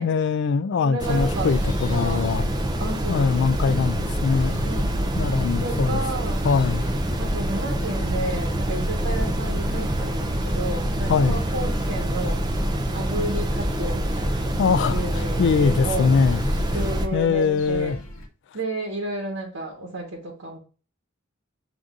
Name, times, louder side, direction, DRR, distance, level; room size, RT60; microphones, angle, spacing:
voice 1, 0.0-2.5 3.1-4.7 5.2-6.0 6.4-6.9 11.1-11.4 14.6-16.4 17.1-18.0, left 5 dB, 55° left, 0.3 m, -22 dB
voice 2, 0.8-1.5 1.9-2.3 2.8-3.6 4.6-5.2 5.6-6.4 7.2-12.4 12.9-14.5 14.9-16.1 16.7-18.0 18.5-20.6, right 2 dB, 75° right, 1.2 m, -32 dB
sound 1, 1.0-17.1, right 1 dB, 20° right, 0.4 m, -25 dB
sound 2, 1.5-18.3, left 1 dB, 75° left, 1.0 m, -40 dB
7.2 x 2.6 x 2.4 m
head